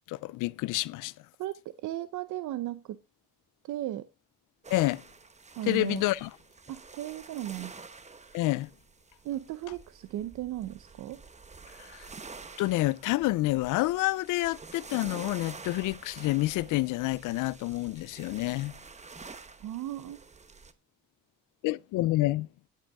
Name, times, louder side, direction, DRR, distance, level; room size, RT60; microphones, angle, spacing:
voice 1, 0.1-1.1 4.7-5.0 5.7-6.3 8.3-8.7 11.8-12.1 12.6-18.8 21.6-22.5, left 18 dB, 90° left, 0.5 m, -28 dB
voice 2, 1.4-3.0 3.6-4.1 5.6-6.0 6.7-7.7 9.2-11.2 19.6-20.2, right 13 dB, 80° right, 0.6 m, -36 dB
sound 1, 4.6-20.7, right 4 dB, 25° right, 0.9 m, -48 dB
13.5 x 7.7 x 3.5 m
cardioid pair, 90°, 30 cm